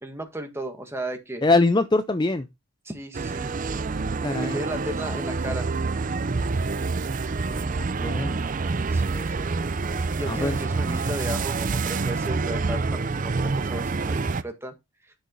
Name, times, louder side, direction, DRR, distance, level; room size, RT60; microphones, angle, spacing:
voice 1, 0.0-1.4 2.9-3.5 4.3-5.7 6.5-6.6 8.9-9.5 10.0-14.7, right 1 dB, 10° right, 1.8 m, -35 dB
voice 2, 1.4-2.5 4.0-4.6 7.2-8.4 9.1-9.3 10.3-10.6, left 3 dB, 20° left, 0.4 m, -24 dB
sound 1, 3.1-14.4, right 4 dB, 35° right, 0.5 m, -27 dB
10.5 x 6.3 x 3.9 m
head